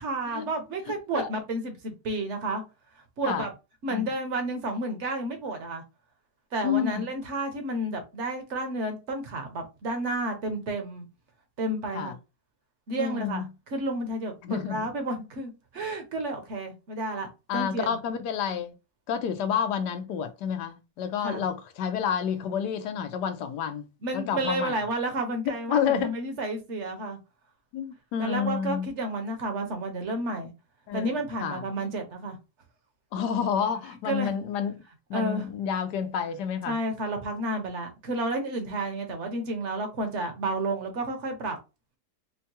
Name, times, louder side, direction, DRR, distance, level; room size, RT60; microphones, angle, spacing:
voice 1, 0.0-2.6 3.2-3.5 3.8-5.8 6.5-11.0 11.6-12.2 12.9-18.0 21.2-21.5 24.0-27.2 28.2-30.5 30.9-32.4 34.0-34.4 35.1-35.5 36.7-41.6, right 1 dB, 50° right, 1.1 m, -31 dB
voice 2, 6.6-7.0 11.9-12.1 13.0-13.5 14.4-14.9 17.5-18.7 19.1-23.9 24.1-24.8 25.5-26.1 27.7-28.9 30.9-31.1 31.4-31.6 33.1-34.8 35.1-36.8, left 7 dB, 80° left, 1.2 m, -29 dB
4.5 x 2.2 x 2.8 m
omnidirectional pair, 1.8 m